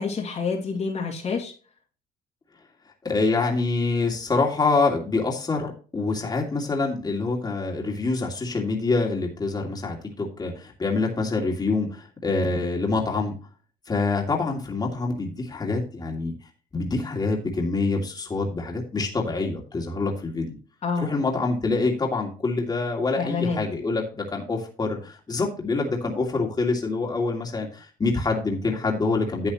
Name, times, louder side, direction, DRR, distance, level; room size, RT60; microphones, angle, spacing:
voice 1, 0.0-1.5 20.8-21.1 23.1-23.6, left 5 dB, 40° left, -1 dB, 2.6 m, -27 dB
voice 2, 3.0-13.3 13.9-16.3 16.7-20.6 21.0-29.5, left 3 dB, 25° left, 0 dB, 2.6 m, -26 dB
11.5 x 7.8 x 3.0 m, 0.37 s
cardioid pair, 110°, 17 cm